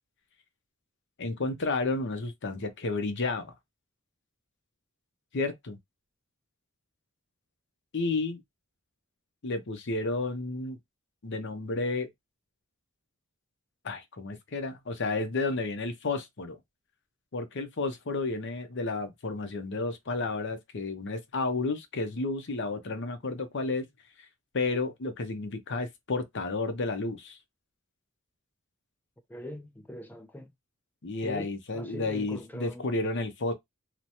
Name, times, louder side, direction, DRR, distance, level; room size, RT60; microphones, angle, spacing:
voice 1, 1.2-3.5 5.3-5.8 7.9-8.4 9.4-10.8 11.2-12.1 13.8-16.6 17.3-23.9 24.5-27.4 31.0-33.5, left 3 dB, 55° left, 0.7 m, -31 dB
voice 2, 29.3-30.5 31.2-31.5 31.7-32.9, left 1 dB, 10° left, 0.4 m, -41 dB
3.1 x 2.1 x 2.7 m
head